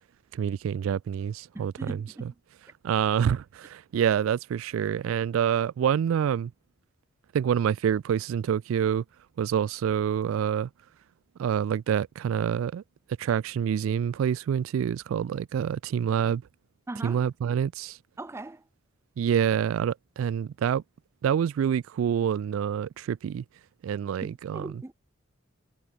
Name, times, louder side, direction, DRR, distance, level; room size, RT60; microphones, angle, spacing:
voice 1, 0.3-2.0 2.8-6.5 7.3-9.0 9.4-10.7 11.4-12.8 13.2-16.4 17.0-18.0 19.2-20.8 21.2-23.4 23.8-24.8, right 8 dB, 75° right, 0.3 m, -27 dB
voice 2, 1.5-2.3 16.9-17.2 18.2-18.6 24.2-24.9, right 2 dB, 15° right, 0.4 m, -40 dB
head